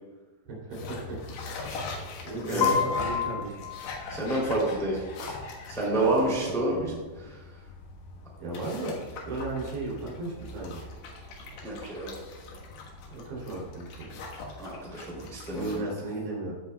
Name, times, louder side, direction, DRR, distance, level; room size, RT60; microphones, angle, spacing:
voice 1, 0.5-1.1 2.2-3.6 5.9-7.0 8.4-10.8 13.1-14.2 15.5-16.5, right 2 dB, 80° right, -4 dB, 5.2 m, -35 dB
sound 1, 0.7-15.8, left 3 dB, 90° left, 3.7 m, -41 dB
voice 2, 2.4-2.7 4.1-5.1 5.7-6.9 11.6-12.1 14.6-15.8, right 2 dB, ahead, -4 dB, 1.7 m, -28 dB
Piano, 2.6-4.6, left 8 dB, 60° left, 2.9 m, -30 dB
16.5 x 7.5 x 2.3 m, 1.3 s
omnidirectional pair, 5.0 m